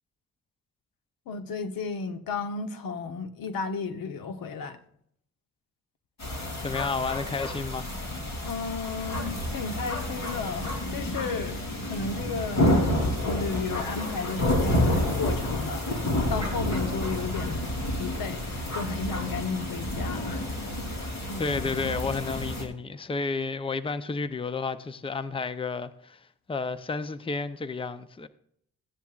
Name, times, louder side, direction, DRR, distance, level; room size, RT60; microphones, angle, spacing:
voice 1, 1.3-4.8 8.4-12.8 13.3-16.0 16.3-17.6 17.9-18.4 18.7-20.6 21.3-21.6, left 4 dB, 85° left, 1.1 m, -33 dB
sound 1, 6.2-22.6, left 1 dB, 50° left, 3.4 m, -29 dB
voice 2, 6.6-7.9 21.4-28.3, left 4 dB, 15° left, 0.6 m, -31 dB
15.0 x 10.5 x 2.4 m
cardioid pair, 90°, 34 cm